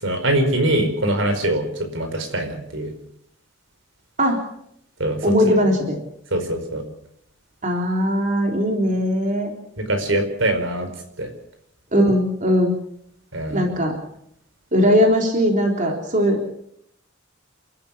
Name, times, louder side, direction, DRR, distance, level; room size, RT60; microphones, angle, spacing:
voice 1, 0.0-2.9 5.0-5.2 6.3-6.8 9.9-10.9 11.2-11.3 13.3-13.7, right 1 dB, 75° right, 7 dB, 4.9 m, -23 dB
voice 2, 5.2-6.0 7.6-9.5 11.9-12.8 13.5-13.9 14.7-16.5, equal, 40° right, 2 dB, 3.7 m, -19 dB
29.0 x 14.0 x 7.3 m, 0.72 s
head